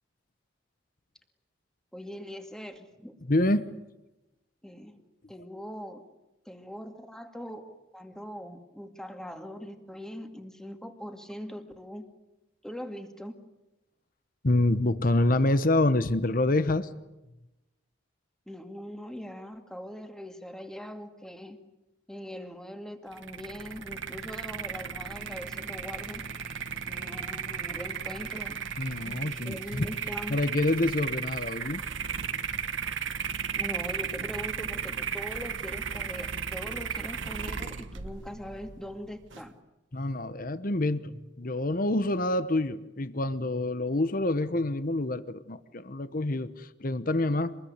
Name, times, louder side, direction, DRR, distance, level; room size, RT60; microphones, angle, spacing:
voice 1, 1.9-3.2 4.6-5.0 5.3-6.0 6.5-12.1 12.6-13.4 18.5-21.6 22.1-26.2 26.8-28.6 29.1-30.4 33.6-39.5, equal, 5° left, 6 dB, 2.2 m, -41 dB
voice 2, 3.3-3.6 14.4-16.9 28.8-29.9 30.3-31.8 39.9-47.6, left 2 dB, 45° left, 13 dB, 1.1 m, -27 dB
sound 1, 23.1-39.5, right 7 dB, 75° right, 1.5 m, -35 dB
sound 2, 25.1-31.1, right 7 dB, 45° right, 2.1 m, -49 dB
27.0 x 21.0 x 9.6 m, 1.0 s
head